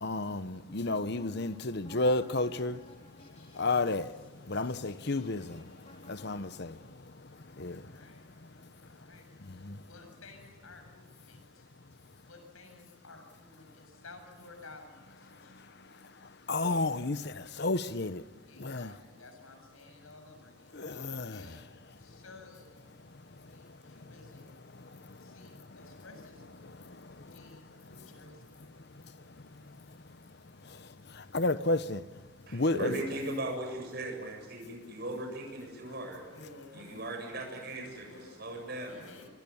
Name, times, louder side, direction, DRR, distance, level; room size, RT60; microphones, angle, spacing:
voice 1, 0.0-2.8 3.6-4.1 4.5-5.6 6.1-6.7 7.6-7.8 9.6-9.7 16.5-18.2 18.6-18.9 20.7-21.4 31.3-32.0 32.5-32.9, left 2 dB, 55° left, 1.0 m, -31 dB
sound 1, 0.7-6.9, left 1 dB, 30° left, 4.0 m, -56 dB
voice 2, 7.7-9.3 9.8-11.7 12.2-16.0 16.7-17.0 18.5-20.8 21.3-23.0 23.4-24.6 25.2-26.7 27.2-28.6 36.3-37.0 38.0-38.2 38.9-39.3, left 3 dB, 90° left, 7.5 m, -54 dB
voice 3, 32.5-36.2 36.7-39.0, right 1 dB, 50° right, 7.9 m, -38 dB
26.5 x 25.0 x 7.2 m
head